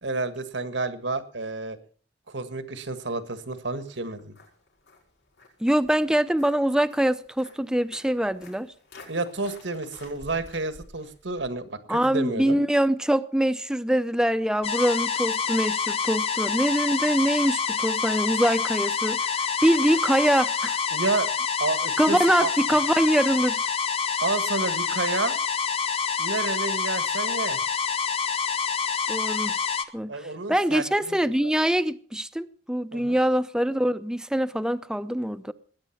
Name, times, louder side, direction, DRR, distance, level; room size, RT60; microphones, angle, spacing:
voice 1, 0.0-1.8 2.3-4.3 9.1-12.6 20.9-21.3 21.6-22.5 24.2-25.4 26.2-27.6 30.1-31.5 32.9-33.2, right 3 dB, 85° right, 1.6 m, -30 dB
Walk footsteps, 2.9-11.5, left 2 dB, 75° left, 6.3 m, -52 dB
voice 2, 5.6-8.7 11.9-19.3 19.6-20.8 22.0-23.7 29.1-29.6 29.9-30.2 30.5-35.5, right 1 dB, 5° right, 0.6 m, -24 dB
sound 1, 14.6-29.9, left 6 dB, 35° left, 1.1 m, -27 dB
20.0 x 9.3 x 5.9 m
head